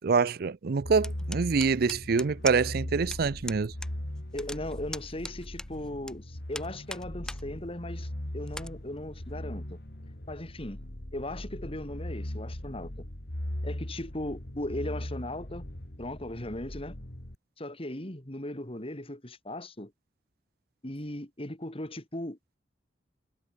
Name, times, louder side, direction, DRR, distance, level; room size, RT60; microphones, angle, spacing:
voice 1, 0.0-3.7, right 5 dB, 60° right, 0.5 m, -26 dB
sound 1, 0.8-17.3, left 1 dB, 65° left, 2.7 m, -39 dB
sound 2, 1.0-2.8 3.1-3.2 3.5-3.9 4.2-6.1 6.5-7.4 7.8-7.9 8.5-8.7, left 1 dB, 5° left, 0.8 m, -39 dB
voice 2, 4.3-9.8 10.3-10.8 11.1-13.0 13.6-15.6 16.0-17.0 17.6-19.9 20.8-22.4, left 1 dB, 35° left, 3.1 m, -38 dB
head